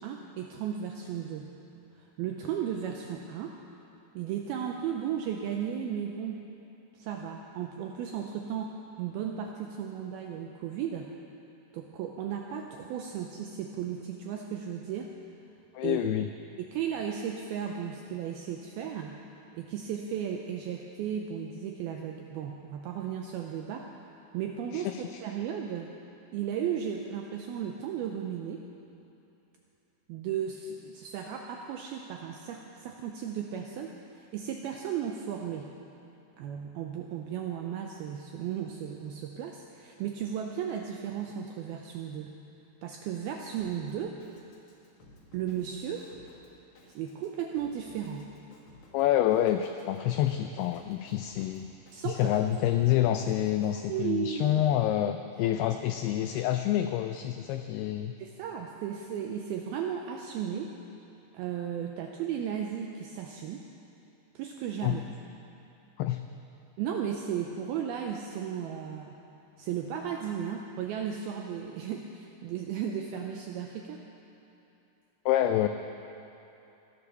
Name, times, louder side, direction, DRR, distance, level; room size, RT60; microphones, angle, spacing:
voice 1, 0.0-1.5 2.0-3.6 4.1-6.4 6.9-11.1 11.7-15.1 15.8-16.1 16.6-19.2 19.5-23.9 24.3-25.9 26.3-28.7 30.1-33.9 34.3-35.7 36.4-42.4 42.8-44.2 45.3-46.1 47.0-48.3 51.9-52.4 53.9-54.6 55.4-55.5 58.2-60.7 61.3-63.6 64.4-65.0 66.8-69.2 69.6-74.0, right 8 dB, 90° right, 2 dB, 2.2 m, -35 dB
voice 2, 15.7-16.3 24.7-25.2 48.9-51.7 52.1-58.1 64.8-65.0 66.0-66.2 75.3-75.7, left 12 dB, 90° left, 8 dB, 2.3 m, -27 dB
Drum kit, 43.6-53.8, left 1 dB, 55° left, 1.7 m, -57 dB
15.0 x 11.5 x 6.8 m, 2.9 s
omnidirectional pair, 5.2 m